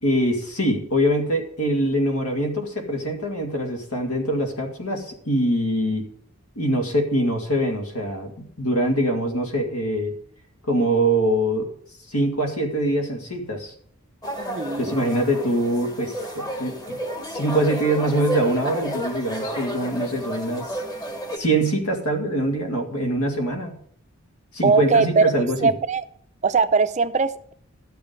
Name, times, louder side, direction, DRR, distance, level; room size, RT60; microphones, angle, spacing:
voice 1, 0.0-6.1 6.6-10.1 10.7-11.7 12.1-13.7 14.8-17.0 17.3-20.8 21.3-23.8 24.5-25.7, right 1 dB, 80° left, 3 dB, 2.3 m, -23 dB
sound 1, 14.2-21.4, equal, 20° left, 1.3 m, -31 dB
voice 2, 14.4-14.9 24.6-26.0 26.4-27.5, right 4 dB, 30° right, 12 dB, 0.5 m, -21 dB
12.0 x 7.0 x 5.3 m, 0.63 s
head